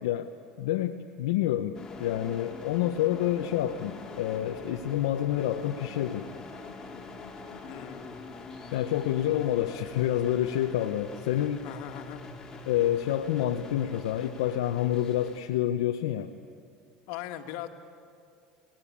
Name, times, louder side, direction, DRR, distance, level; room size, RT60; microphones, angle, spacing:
voice 1, 0.0-0.3 0.6-6.3 8.7-11.6 12.7-16.3, left 12 dB, 90° left, 5 dB, 0.9 m, -28 dB
sound 1, 1.7-15.4, left 3 dB, 20° left, 4.0 m, -44 dB
voice 2, 7.6-8.2 11.6-12.2 17.1-17.7, left 12 dB, 70° left, 5 dB, 2.0 m, -39 dB
28.5 x 18.5 x 8.7 m, 2.4 s
supercardioid pair, 115°, 3 cm